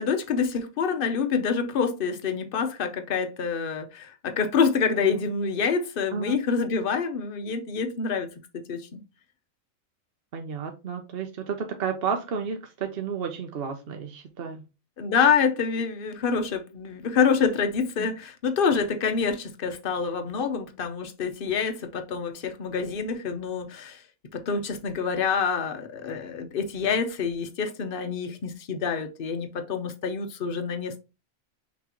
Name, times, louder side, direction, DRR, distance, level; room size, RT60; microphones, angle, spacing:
voice 1, 0.0-8.3 8.5-9.0 15.0-24.0 24.3-31.0, left 5 dB, 50° left, 0.8 m, -27 dB
voice 2, 10.3-14.6, right 6 dB, 55° right, 0.8 m, -32 dB
5.8 x 3.1 x 2.9 m
omnidirectional pair, 1.4 m